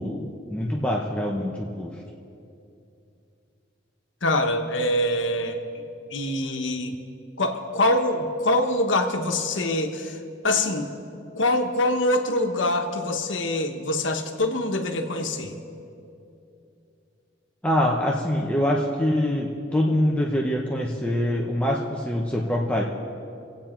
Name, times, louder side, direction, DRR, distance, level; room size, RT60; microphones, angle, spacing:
voice 1, 0.0-1.9 17.6-22.8, left 1 dB, 5° left, -2 dB, 0.8 m, -24 dB
voice 2, 4.2-5.6 6.1-6.9 7.4-10.2 10.4-10.9 11.3-15.6, left 1 dB, 75° left, 5 dB, 1.2 m, -24 dB
25.0 x 8.8 x 4.4 m, 2.7 s
head